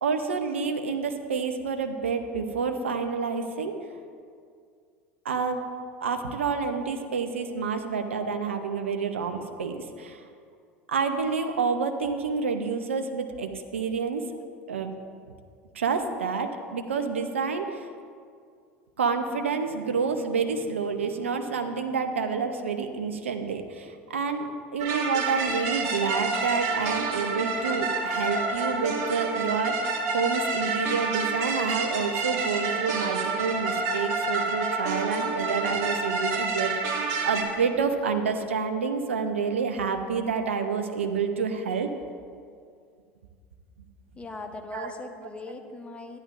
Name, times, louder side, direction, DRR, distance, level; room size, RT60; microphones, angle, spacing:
voice 1, 0.0-3.8 5.2-5.6 6.0-10.2 10.9-14.2 14.7-14.9 15.7-17.9 19.0-24.5 24.7-41.9 44.7-44.9, right 5 dB, 80° right, 6 dB, 0.7 m, -28 dB
sound 1, 24.8-37.4, right 3 dB, 50° right, 1.4 m, -28 dB
voice 2, 44.2-46.2, left 2 dB, 20° left, 4 dB, 1.0 m, -39 dB
13.0 x 10.5 x 2.6 m, 2.2 s
figure-of-eight pair, 70°, 7 cm